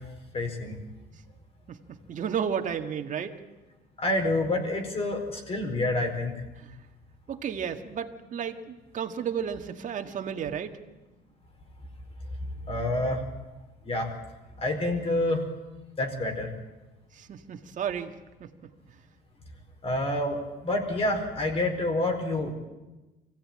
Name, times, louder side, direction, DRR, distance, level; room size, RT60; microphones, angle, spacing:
voice 1, 0.3-0.8 4.0-6.3 12.7-13.2 13.8-14.1 14.6-15.4 16.0-16.5 19.8-22.5, left 1 dB, 35° left, 4 dB, 4.8 m, -28 dB
voice 2, 2.1-3.3 6.6-6.8 7.3-10.8 17.2-18.1 18.4-18.5, right 8 dB, 50° right, 5 dB, 1.9 m, -32 dB
24.5 x 16.5 x 8.9 m, 1.1 s
cardioid pair, 110°, 17 cm